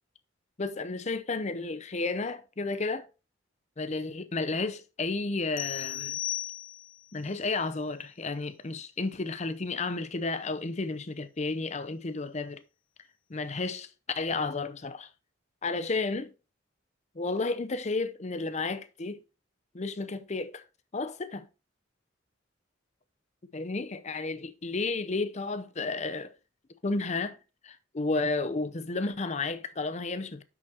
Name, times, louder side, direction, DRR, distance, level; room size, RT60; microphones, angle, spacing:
voice 1, 0.6-3.1 3.8-6.2 7.1-12.6 13.3-15.1 15.6-16.3 17.2-19.2 19.7-20.6 20.9-21.5 23.5-26.3 26.8-27.4 27.6-30.4, left 3 dB, 35° left, 0.6 m, -32 dB
sound 1, 5.6-7.1, left 14 dB, 70° left, 0.3 m, -35 dB
6.3 x 6.2 x 4.2 m
head